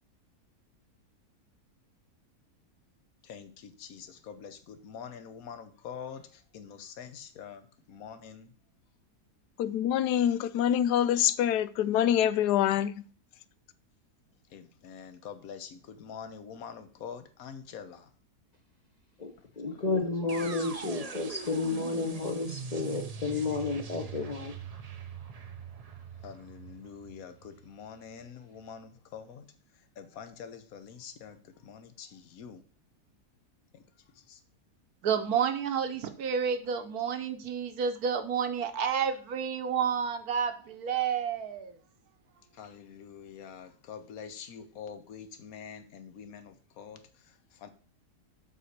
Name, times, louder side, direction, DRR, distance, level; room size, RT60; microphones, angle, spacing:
voice 1, 3.2-8.5 14.5-18.1 19.7-19.8 20.2-20.5 26.2-29.5 30.0-32.6 33.7-33.8 34.1-34.4 42.5-47.7, left 7 dB, 65° left, 1.3 m, -46 dB
voice 2, 9.6-13.1, left 10 dB, 90° left, 1.2 m, -25 dB
voice 3, 19.2-24.5, left 3 dB, 35° left, 0.8 m, -31 dB
sound 1, 20.3-28.2, right 6 dB, 55° right, 0.4 m, -42 dB
voice 4, 35.0-41.8, right 7 dB, 70° right, 1.3 m, -30 dB
7.6 x 4.2 x 6.5 m
omnidirectional pair, 1.7 m